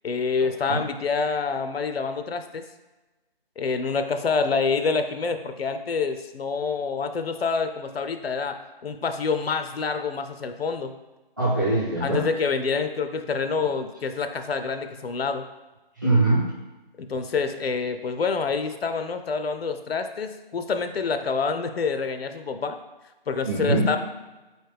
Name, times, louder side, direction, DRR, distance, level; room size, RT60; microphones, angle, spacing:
voice 1, 0.0-2.6 3.6-10.9 12.0-15.5 17.0-22.8 23.3-24.0, left 5 dB, 90° left, 8 dB, 0.5 m, -27 dB
voice 2, 11.4-12.3 16.0-16.6 23.4-24.0, right 2 dB, 20° right, -9 dB, 0.9 m, -22 dB
4.1 x 3.1 x 3.3 m, 1.1 s
figure-of-eight pair, 175°, 30 cm